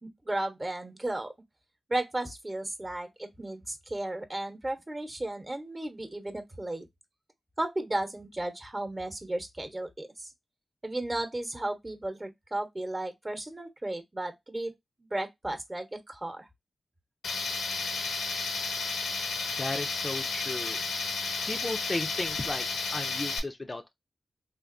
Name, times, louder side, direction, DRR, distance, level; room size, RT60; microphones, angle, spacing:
voice 1, 0.0-1.3 1.9-6.9 7.6-10.3 10.8-14.7 15.0-16.5, right 1 dB, 25° right, 0.9 m, -34 dB
Tools, 17.2-23.4, left 4 dB, 85° left, 0.8 m, -32 dB
voice 2, 19.5-20.8 21.4-23.9, left 2 dB, 30° left, 0.5 m, -35 dB
3.5 x 2.5 x 2.4 m
cardioid pair, 55°, 0 cm